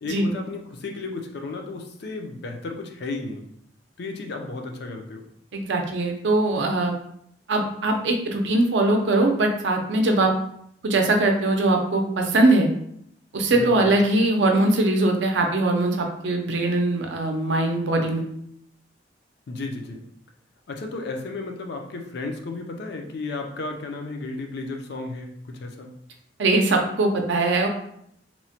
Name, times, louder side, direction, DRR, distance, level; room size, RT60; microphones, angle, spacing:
voice 1, 0.0-3.5 4.0-5.2 13.5-13.9 19.5-20.0 20.7-25.9, left 3 dB, 60° left, 3 dB, 0.4 m, -33 dB
voice 2, 5.5-7.0 7.5-10.3 10.8-12.7 13.3-18.2 26.4-27.7, right 2 dB, 75° right, 3 dB, 0.5 m, -21 dB
3.0 x 2.1 x 2.7 m, 0.70 s
head